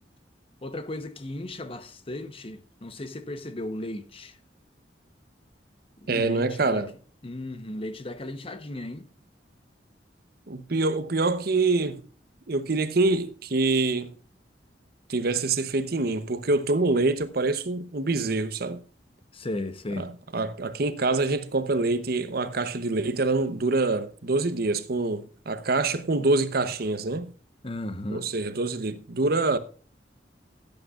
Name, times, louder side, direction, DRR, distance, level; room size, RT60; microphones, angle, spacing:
voice 1, 0.6-4.4 6.0-6.9 7.2-9.1 19.3-20.1 27.6-28.3, left 1 dB, 30° left, 0.9 m, -35 dB
voice 2, 6.1-6.9 10.5-12.0 12.5-14.1 15.1-18.8 20.0-27.3 28.1-29.6, right 3 dB, 60° right, 0.8 m, -25 dB
16.5 x 8.7 x 2.4 m
head